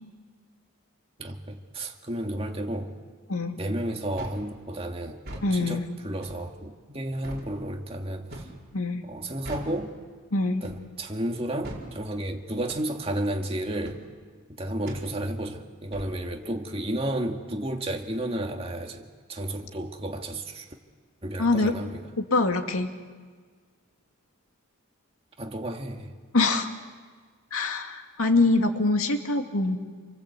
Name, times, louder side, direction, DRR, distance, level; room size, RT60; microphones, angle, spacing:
voice 1, 1.2-2.9 3.6-5.2 5.5-8.5 9.0-10.0 10.6-14.0 14.5-20.7 21.2-22.0 25.4-26.1, right 1 dB, 30° right, 3 dB, 2.1 m, -32 dB
voice 2, 3.3-3.6 5.4-5.9 8.7-9.0 10.3-10.7 21.4-21.7 22.2-22.9 26.3-26.7 27.5-29.8, left 3 dB, 90° left, 4 dB, 2.3 m, -24 dB
sound 1, 4.2-4.5 5.2-5.5 6.2-6.4 7.2-7.5 8.3-8.6 9.4-9.8 10.6-10.9 11.6-11.9 12.7-12.9 13.8-14.0 14.9-15.1 15.9-16.2, right 1 dB, 50° right, 4.9 m, -40 dB
28.5 x 23.5 x 8.2 m, 1.6 s
head